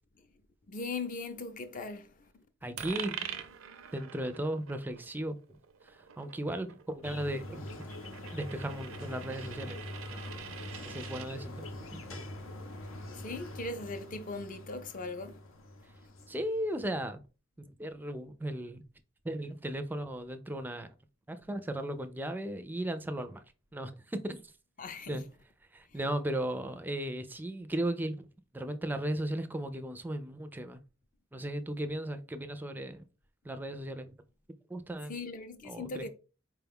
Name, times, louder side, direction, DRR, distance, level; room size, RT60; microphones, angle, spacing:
voice 1, 0.7-2.1 13.2-15.4 24.8-25.2 35.1-36.1, left 3 dB, 40° left, 0.5 m, -39 dB
voice 2, 2.6-3.2 3.9-5.4 5.8-7.8 8.3-9.8 10.1-10.2 10.8-12.2 16.3-17.2 17.6-18.8 19.2-20.9 21.3-23.4 23.7-24.5 25.1-25.2 25.7-28.3 28.5-30.8 31.3-33.1 33.4-34.1 34.7-35.2 35.7-36.1, right 1 dB, 10° right, 0.4 m, -36 dB
Coin (dropping), 2.8-11.3, right 9 dB, 80° right, 0.5 m, -45 dB
sound 1, 7.0-17.1, left 1 dB, 85° left, 0.7 m, -44 dB
4.6 x 2.3 x 3.5 m
head